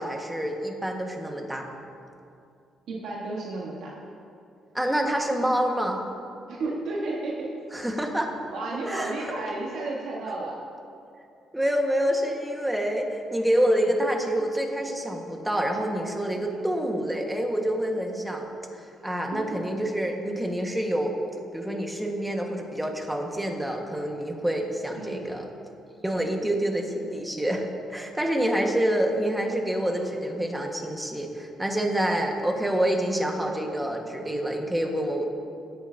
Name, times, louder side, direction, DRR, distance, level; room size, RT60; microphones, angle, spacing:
voice 1, 0.0-1.6 4.7-6.0 7.7-8.3 8.9-9.1 11.5-18.5 19.0-21.1 21.5-25.5 26.0-35.2, right 1 dB, 5° right, 2 dB, 1.5 m, -27 dB
voice 2, 2.9-4.0 6.5-7.5 8.5-10.6 13.7-13.9 16.5-16.7 19.3-19.5 24.9-25.3 26.3-26.4 29.9-30.1, right 2 dB, 75° right, -4 dB, 1.4 m, -33 dB
17.5 x 8.5 x 2.8 m, 2.6 s
cardioid pair, 90°, 0 cm